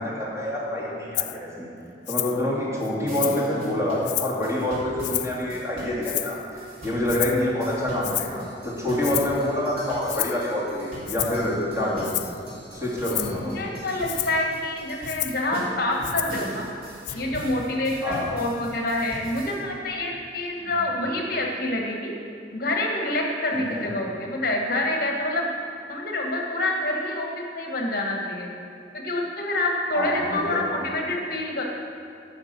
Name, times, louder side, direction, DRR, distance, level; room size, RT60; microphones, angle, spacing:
voice 1, 0.0-1.7 2.1-6.4 6.8-12.1 12.7-13.6 18.0-18.3 20.6-20.9 23.5-23.9 29.9-30.6, left 1 dB, 15° right, -7 dB, 2.8 m, -27 dB
Rattle (instrument), 1.1-1.4 2.1-2.4 2.8-3.5 4.0-4.4 5.0-5.4 6.0-6.5 7.1-7.4 8.0-8.4 9.0-9.4 10.1-10.4 11.1-11.5 12.0-12.4 13.0-13.4 14.0-14.4 15.0-15.4 16.0-16.4 17.0-17.1, left 17 dB, 75° left, 0.4 m, -30 dB
sound 1, 3.1-19.6, left 1 dB, 35° right, 2.3 m, -40 dB
voice 2, 13.4-16.7 17.1-22.1 22.5-25.5 25.9-28.5 28.9-31.6, left 1 dB, 55° left, 0 dB, 1.3 m, -27 dB
12.0 x 5.9 x 7.3 m, 2.7 s
head